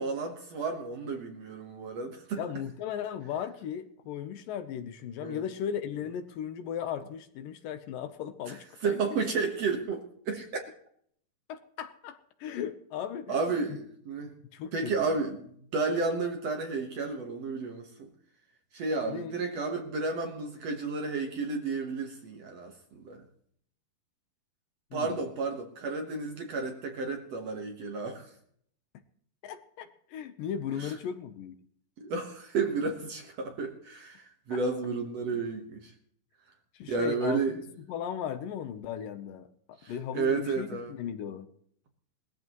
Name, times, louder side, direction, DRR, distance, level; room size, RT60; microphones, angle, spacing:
voice 1, 0.0-2.4 5.2-5.4 8.5-8.6 8.8-10.7 13.3-14.3 14.7-18.1 18.7-23.2 24.9-28.3 30.8-30.9 32.0-35.9 36.9-37.6 39.8-41.0, right 4 dB, 55° right, 4 dB, 2.0 m, -32 dB
voice 2, 2.4-9.3 11.5-13.4 13.7-13.8 14.5-15.1 19.0-19.4 24.9-25.2 29.4-31.6 34.5-34.6 36.7-37.6 37.9-39.5 39.9-41.5, left 8 dB, 75° left, 9 dB, 2.4 m, -37 dB
20.5 x 14.5 x 3.1 m, 0.63 s
omnidirectional pair, 4.2 m